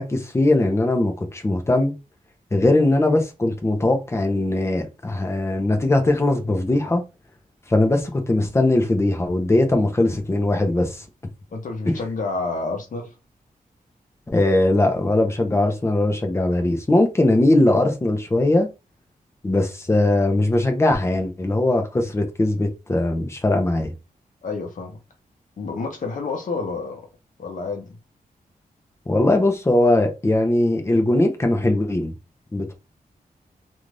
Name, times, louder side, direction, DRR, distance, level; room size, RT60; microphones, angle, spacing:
voice 1, 0.0-1.9 2.5-7.0 7.7-11.0 14.3-18.7 19.4-23.9 29.1-32.2 32.5-32.7, left 2 dB, 20° left, 0.6 m, -20 dB
voice 2, 11.5-13.1 24.4-25.0 25.6-27.1 27.4-28.0, left 3 dB, 60° left, 0.8 m, -29 dB
2.6 x 2.4 x 3.2 m
wide cardioid pair, 175°, 15 cm